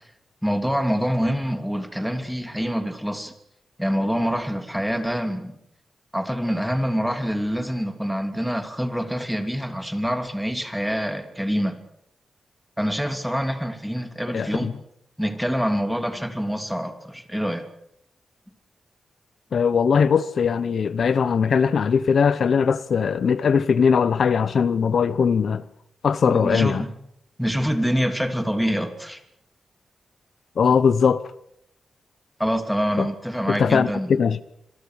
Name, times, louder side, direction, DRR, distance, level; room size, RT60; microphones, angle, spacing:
voice 1, 0.4-3.3 3.8-5.5 6.1-11.8 12.8-14.7 15.2-17.6 26.2-26.9 27.4-29.2 32.4-34.2, equal, ahead, 2.9 m, -25 dB
voice 2, 14.3-14.7 19.5-25.6 26.0-26.8 30.6-31.3 33.0-33.1 33.5-34.4, left 6 dB, 65° left, 0.9 m, -20 dB
26.5 x 22.5 x 6.5 m
wide cardioid pair, 115°, 0 cm